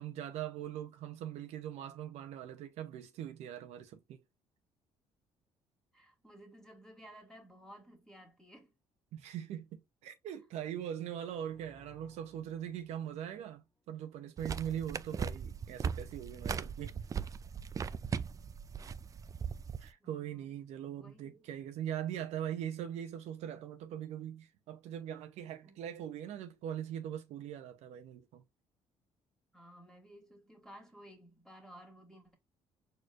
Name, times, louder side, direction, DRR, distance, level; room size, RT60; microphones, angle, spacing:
voice 1, 0.0-4.2 9.1-17.0 19.8-28.4, right 10 dB, 80° right, 0.7 m, -41 dB
voice 2, 5.9-8.7 20.0-20.5 21.0-21.5 25.6-25.8 29.5-32.4, equal, 5° left, 1.9 m, -55 dB
sound 1, 11.4-14.2, left 2 dB, 30° left, 1.3 m, -65 dB
sound 2, 14.4-19.9, right 6 dB, 30° right, 0.3 m, -39 dB
4.5 x 3.1 x 2.4 m
cardioid pair, 95°, 11 cm